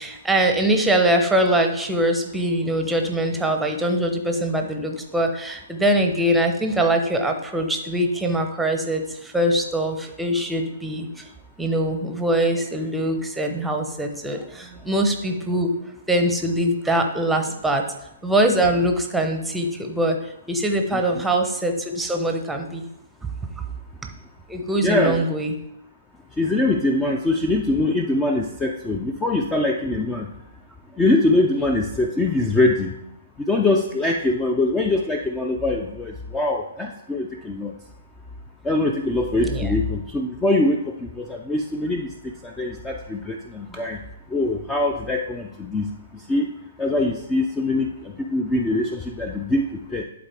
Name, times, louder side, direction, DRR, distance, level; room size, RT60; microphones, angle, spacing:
voice 1, 0.0-11.3 11.6-15.8 16.1-17.9 18.2-22.9 24.5-25.5 39.4-39.7 43.7-43.8, right 1 dB, 5° right, 4 dB, 0.8 m, -23 dB
voice 2, 24.8-25.2 26.4-30.3 31.0-32.9 33.5-37.7 38.6-44.0 44.3-45.9 46.1-46.5 46.8-50.0, left 2 dB, 10° left, 3 dB, 0.5 m, -23 dB
11.0 x 4.0 x 3.5 m, 0.83 s
figure-of-eight pair, 125°, 0 cm